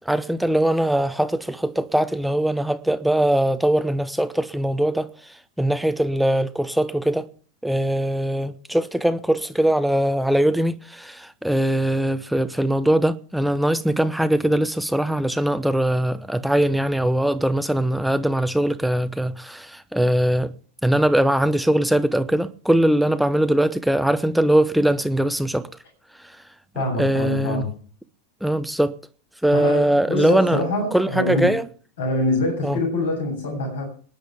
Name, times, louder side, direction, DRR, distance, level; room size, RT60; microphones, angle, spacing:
voice 1, 0.1-5.1 5.6-7.3 7.6-20.5 20.8-25.7 27.0-27.6 28.4-28.9 29.4-30.6 30.9-31.7 32.6-32.8, right 1 dB, ahead, 0.8 m, -21 dB
voice 2, 26.7-27.7 29.5-31.5 32.0-33.8, left 1 dB, 65° left, 7.6 m, -25 dB
26.0 x 10.0 x 3.5 m
figure-of-eight pair, 90°, 0 cm